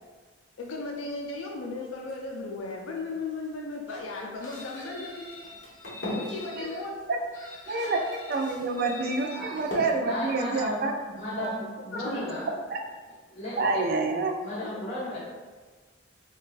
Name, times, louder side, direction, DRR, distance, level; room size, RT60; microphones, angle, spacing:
voice 1, 0.6-5.1 6.1-7.0 8.8-8.9 11.9-12.3 14.6-14.8, left 3 dB, 85° left, 0 dB, 0.4 m, -36 dB
sound 1, 0.6-11.4, left 1 dB, 65° left, 0.8 m, -42 dB
Chicken rooster, 4.4-6.8 7.3-9.8, left 3 dB, 15° left, 0.5 m, -45 dB
voice 2, 7.7-11.5 12.7-12.8 13.6-14.3, right 3 dB, 50° right, 3 dB, 0.3 m, -28 dB
voice 3, 10.0-10.8 11.2-12.4 13.3-13.9 14.4-15.2, equal, 35° left, -9 dB, 1.4 m, -35 dB
3.8 x 2.3 x 2.5 m, 1.4 s
head